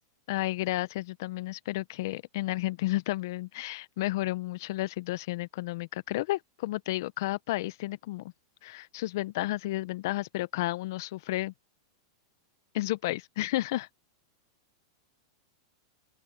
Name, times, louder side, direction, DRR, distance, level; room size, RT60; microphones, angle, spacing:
voice 1, 0.3-8.3 8.6-11.5 12.7-13.9, left 17 dB, 60° left, 0.7 m, -32 dB
open air
supercardioid pair, 140°, 2 cm